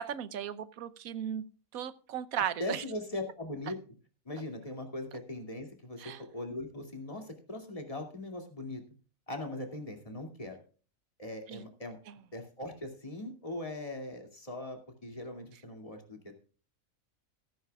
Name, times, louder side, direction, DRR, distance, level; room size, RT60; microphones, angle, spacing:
voice 1, 0.0-1.5 1.7-2.8 6.0-6.2 11.5-11.6 12.1-12.2, right 9 dB, 85° right, 15 dB, 1.3 m, -36 dB
voice 2, 2.6-3.7 4.3-8.8 9.3-10.6 11.2-12.0 12.3-16.4, left 2 dB, 25° left, 4 dB, 2.6 m, -40 dB
15.0 x 13.5 x 2.4 m, 0.39 s
omnidirectional pair, 1.4 m